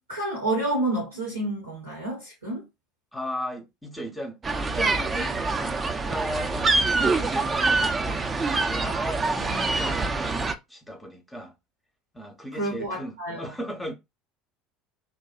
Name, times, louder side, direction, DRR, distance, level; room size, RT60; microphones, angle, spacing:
voice 1, 0.0-2.6 12.5-13.5, right 2 dB, 85° right, 0.8 m, -29 dB
voice 2, 3.1-8.2 8.7-11.5 12.1-13.9, equal, 5° left, 0.7 m, -37 dB
sound 1, 4.4-10.5, right 3 dB, 25° right, 0.4 m, -25 dB
2.6 x 2.1 x 2.4 m
figure-of-eight pair, 70°, 0 cm